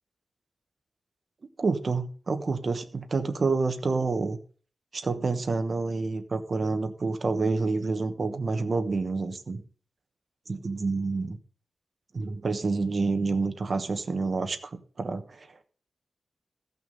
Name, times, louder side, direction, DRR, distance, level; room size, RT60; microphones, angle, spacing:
voice 1, 1.6-4.4 4.9-9.6 10.5-11.4 12.1-15.5, right 3 dB, 40° right, 7 dB, 1.2 m, -28 dB
14.5 x 5.9 x 5.3 m, 0.42 s
wide cardioid pair, 175°, 0 cm